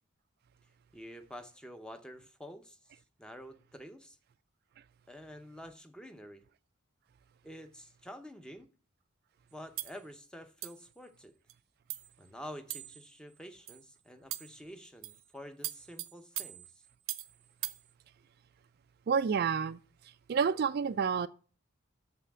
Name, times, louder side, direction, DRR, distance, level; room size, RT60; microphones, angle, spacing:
voice 1, 0.9-2.8 3.2-4.2 5.1-6.4 7.4-8.7 9.5-11.3 12.2-16.8, equal, 5° left, 0.7 m, -48 dB
sound 1, 9.8-10.0 10.6-10.9 11.5-11.6 11.9-12.1 12.7-13.1 13.7-13.8 14.3-14.6 15.0-15.2 15.6-17.3 17.6-17.8, right 16 dB, 75° right, 0.7 m, -40 dB
voice 2, 19.1-21.3, right 6 dB, 50° right, 0.3 m, -30 dB
6.8 x 5.6 x 7.3 m
head